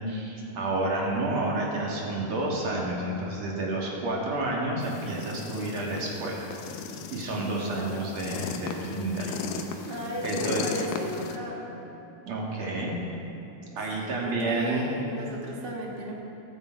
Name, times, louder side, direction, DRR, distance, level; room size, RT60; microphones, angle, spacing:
voice 1, 0.1-6.5 7.1-9.4 10.2-10.6 12.3-13.0 13.8-14.9, right 2 dB, 50° right, -3 dB, 2.9 m, -30 dB
sound 1, 4.8-11.4, left 6 dB, 85° left, 2.7 m, -37 dB
voice 2, 9.8-11.7 14.0-16.1, equal, 35° right, -2 dB, 0.9 m, -36 dB
21.5 x 9.0 x 4.6 m, 2.9 s
omnidirectional pair, 4.0 m